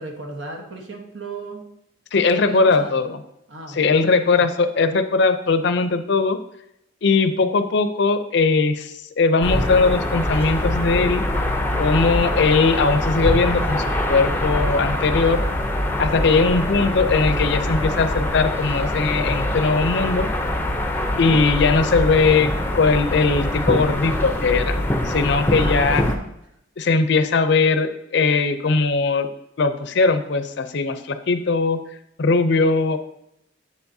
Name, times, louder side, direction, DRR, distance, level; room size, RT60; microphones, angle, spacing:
voice 1, 0.0-1.6 2.3-3.0 3.5-4.0 4.4-4.5 21.1-21.4 25.5-26.2, right 2 dB, 75° right, 2 dB, 1.2 m, -34 dB
voice 2, 2.1-3.2 3.7-6.4 7.0-11.2 11.7-15.4 16.0-20.3 21.2-22.5 22.7-24.8 25.0-26.0 26.8-29.3 29.6-31.8 32.2-33.0, left 4 dB, 65° left, 10 dB, 0.5 m, -19 dB
sound 1, 9.4-26.2, left 1 dB, 10° left, 0.6 m, -23 dB
8.1 x 7.1 x 2.7 m, 0.80 s
head